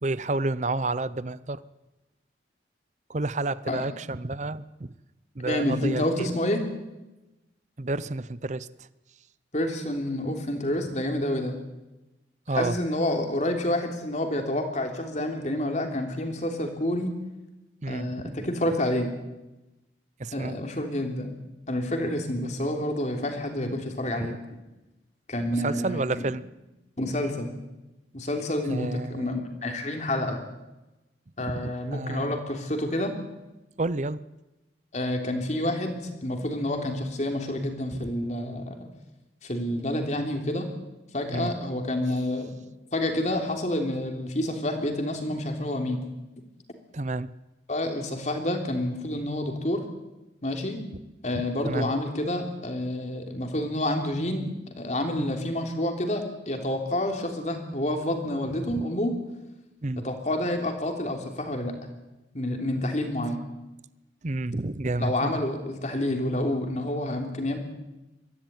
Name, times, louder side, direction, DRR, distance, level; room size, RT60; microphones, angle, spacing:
voice 1, 0.0-1.6 3.1-4.9 5.3-6.3 7.8-8.9 12.5-12.8 17.8-18.5 20.2-20.6 24.2-24.4 25.5-26.4 28.7-29.3 31.5-32.4 33.8-34.2 37.9-38.1 41.3-41.5 46.9-47.3 51.3-51.9 55.2-55.3 58.6-58.8 59.8-60.1 64.2-65.4, right 2 dB, 40° right, 17 dB, 0.7 m, -30 dB
voice 2, 5.4-6.6 9.5-11.6 12.5-17.1 17.8-19.1 20.3-21.3 21.7-24.6 25.3-26.3 27.0-27.5 28.1-30.4 31.4-33.2 34.9-38.8 39.4-40.7 41.1-42.6 42.9-46.0 47.7-49.8 50.4-50.8 51.2-59.2 60.0-61.7 62.3-63.4 65.0-67.6, left 1 dB, 40° left, 4 dB, 3.3 m, -28 dB
23.0 x 15.0 x 9.5 m, 1.0 s
head